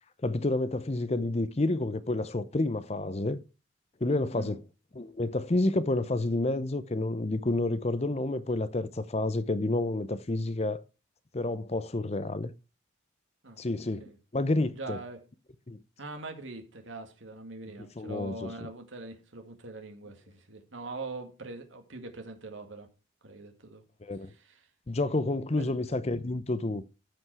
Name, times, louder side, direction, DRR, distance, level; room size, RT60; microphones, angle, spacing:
voice 1, 0.2-3.4 4.0-4.6 4.9-10.8 11.3-12.5 13.6-14.0 14.3-15.0 15.7-15.8 18.0-18.7 24.0-24.3 24.9-26.8, left 2 dB, 30° left, 0.6 m, -29 dB
voice 2, 14.4-15.2 16.0-22.9 23.2-23.8 24.3-24.6 25.5-25.7, right 2 dB, 75° right, 2.2 m, -43 dB
13.5 x 5.2 x 4.8 m
head